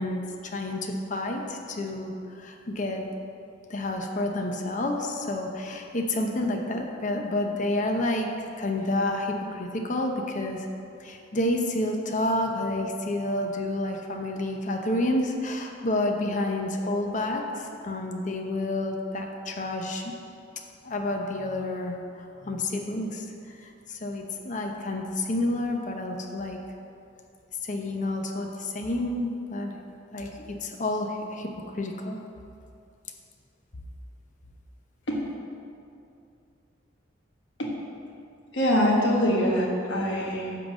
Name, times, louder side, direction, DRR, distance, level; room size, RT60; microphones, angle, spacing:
voice 1, 0.0-3.0 3.7-8.3 8.6-10.7 11.0-20.1 20.8-26.6 27.6-29.8 30.1-30.3 30.6-31.5 31.7-32.2, left 1 dB, 40° left, 3 dB, 0.8 m, -29 dB
voice 2, 38.5-40.6, equal, 70° left, -3 dB, 1.6 m, -24 dB
10.0 x 3.9 x 7.4 m, 2.6 s
head